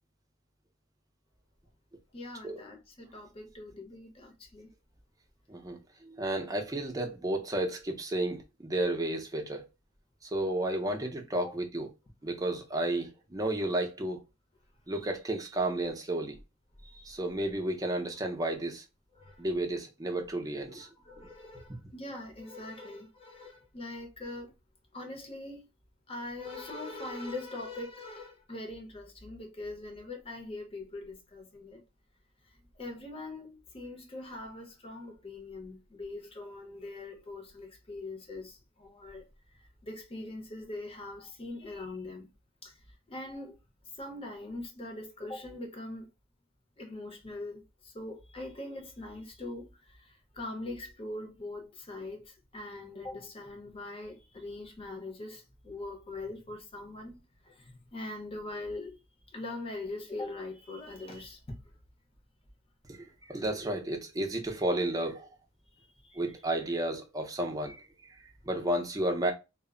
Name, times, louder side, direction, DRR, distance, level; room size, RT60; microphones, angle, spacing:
voice 1, 2.1-4.7 11.4-11.6 19.2-19.4 20.8-24.5 24.9-25.6 26.1-31.8 32.8-39.2 39.8-42.3 42.6-42.7 43.1-43.6 44.0-46.1 46.8-57.2 57.4-59.0 59.3-61.4 66.0-66.2, left 2 dB, 30° left, 0.7 m, -42 dB
voice 2, 5.5-9.6 10.2-11.9 12.2-14.2 14.9-16.4 16.9-18.8 19.4-20.9 62.9-65.3 66.1-67.9 68.5-69.3, right 1 dB, 20° right, 0.6 m, -32 dB
2.1 x 2.0 x 3.5 m
head